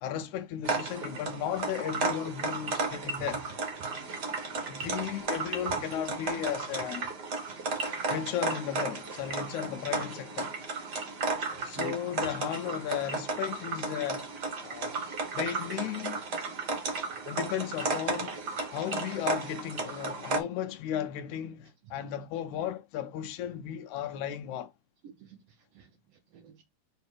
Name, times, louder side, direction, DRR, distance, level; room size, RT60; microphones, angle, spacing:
voice 1, 0.0-3.4 4.7-7.1 8.1-10.6 11.6-14.3 14.6-15.0 15.3-16.2 17.3-18.4 18.7-24.7, left 10 dB, 75° left, 1.9 m, -35 dB
sound 1, 0.6-20.4, right 3 dB, 45° right, 1.4 m, -34 dB
voice 2, 7.5-7.9 11.5-12.0 25.0-25.4 25.7-25.9 26.3-26.6, right 7 dB, 70° right, 1.6 m, -46 dB
6.6 x 3.3 x 4.5 m
omnidirectional pair, 3.6 m